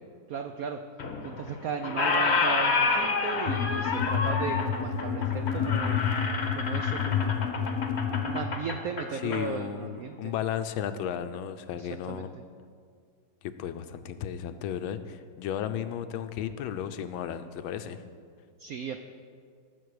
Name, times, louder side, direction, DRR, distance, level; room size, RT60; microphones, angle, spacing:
voice 1, 0.3-0.8 1.2-6.0 6.5-7.7 8.2-10.3 11.8-12.4 18.6-19.0, right 6 dB, 85° right, 7 dB, 0.7 m, -36 dB
Squeak, 1.0-1.5 1.8-9.4, left 4 dB, 45° left, 0.9 m, -29 dB
sound 1, 3.5-8.5, left 8 dB, 70° left, 0.8 m, -29 dB
voice 2, 9.1-12.3 13.4-18.0, left 9 dB, 90° left, 10 dB, 1.4 m, -34 dB
19.0 x 6.5 x 4.8 m, 2.1 s
omnidirectional pair, 2.2 m